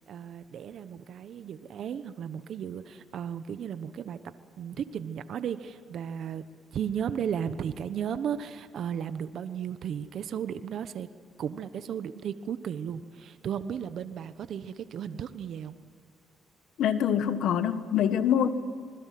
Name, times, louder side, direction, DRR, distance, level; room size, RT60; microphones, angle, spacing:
voice 1, 0.1-6.4 6.7-11.1 11.4-15.7, right 8 dB, 65° right, 11 dB, 1.1 m, -35 dB
voice 2, 16.8-18.5, left 9 dB, 80° left, 11 dB, 1.6 m, -25 dB
27.0 x 21.0 x 7.7 m, 2.1 s
cardioid pair, 90°, 0 cm